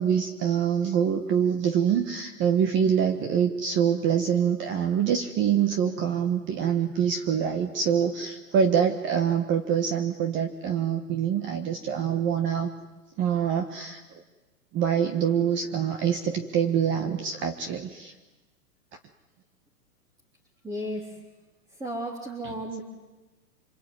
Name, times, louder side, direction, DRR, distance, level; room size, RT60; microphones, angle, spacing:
voice 1, 0.0-12.7 13.2-14.2 14.7-18.1, right 8 dB, 25° right, 7 dB, 1.5 m, -25 dB
voice 2, 20.6-21.2 21.7-22.8, equal, 10° right, -2 dB, 3.7 m, -34 dB
26.5 x 21.5 x 9.7 m, 1.2 s
hypercardioid pair, 140°, 46 cm